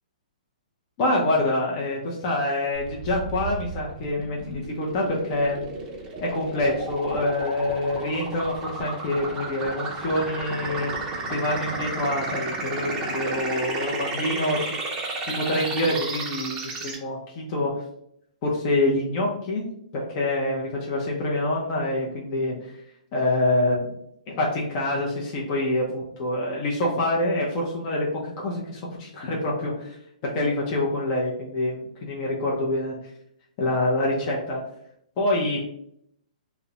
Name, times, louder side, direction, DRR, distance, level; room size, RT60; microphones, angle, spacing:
voice 1, 1.0-5.7 6.2-10.9 11.3-14.7 15.2-17.7 18.4-19.6 19.9-22.8 23.1-23.9 24.3-30.0 30.2-32.9 33.6-34.6 35.2-35.6, left 1 dB, 35° left, -3 dB, 0.5 m, -26 dB
sound 1, 2.8-17.0, right 3 dB, 20° right, 0.5 m, -33 dB
2.4 x 2.0 x 2.7 m, 0.73 s
hypercardioid pair, 145°, 4 cm